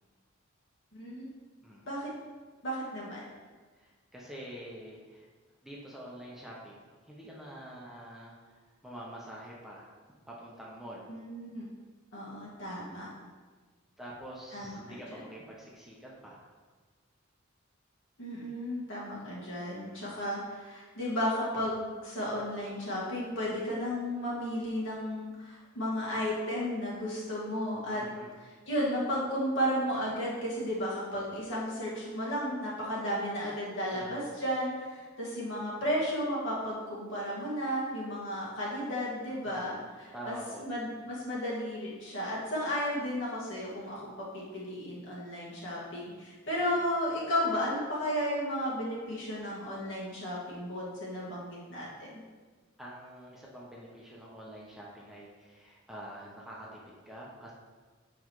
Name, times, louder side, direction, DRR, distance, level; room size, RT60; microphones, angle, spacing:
voice 1, 0.9-1.2 1.9-2.1 2.6-3.2 11.1-11.7 12.1-13.1 14.5-14.8 18.2-28.0 28.4-40.3 40.6-44.0 44.3-52.2, equal, 65° left, -6 dB, 1.9 m, -33 dB
voice 2, 3.7-5.3 5.6-9.9 10.3-11.1 14.0-16.5 19.8-20.2 27.9-28.3 33.9-34.3 39.4-39.8 40.1-40.7 46.6-46.8 52.8-57.5, right 1 dB, ahead, -5 dB, 0.8 m, -46 dB
7.9 x 5.0 x 3.1 m, 1.4 s
head